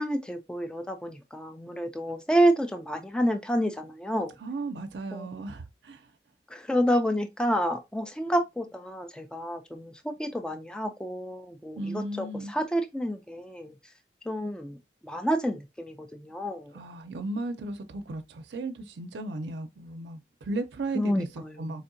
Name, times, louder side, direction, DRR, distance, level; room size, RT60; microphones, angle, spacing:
voice 1, 0.0-4.3 5.1-5.3 6.5-13.7 14.3-14.8 15.0-16.7 21.0-21.8, equal, 5° left, 0.4 m, -29 dB
voice 2, 4.4-6.0 11.8-12.5 16.7-21.3 21.6-21.8, right 2 dB, 80° right, 0.5 m, -35 dB
4.2 x 2.7 x 2.5 m
head